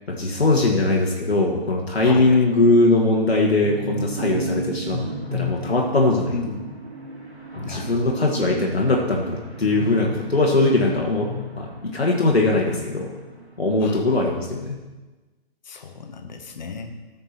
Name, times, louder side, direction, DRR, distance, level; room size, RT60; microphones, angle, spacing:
voice 1, 0.1-5.0 5.3-6.3 7.6-11.3 11.6-13.1 13.6-14.8, left 2 dB, 75° left, -1 dB, 1.6 m, -20 dB
voice 2, 2.0-2.5 6.3-6.8 7.6-8.1 13.8-14.0 15.6-16.9, left 4 dB, 45° left, 4 dB, 1.2 m, -34 dB
sound 1, 3.6-13.5 13.8-13.9, right 4 dB, 20° right, 0.5 m, -36 dB
sound 2, 4.9-13.6, left 4 dB, 90° right, 1.7 m, -37 dB
14.0 x 5.3 x 4.5 m, 1.2 s
figure-of-eight pair, 135°, 32 cm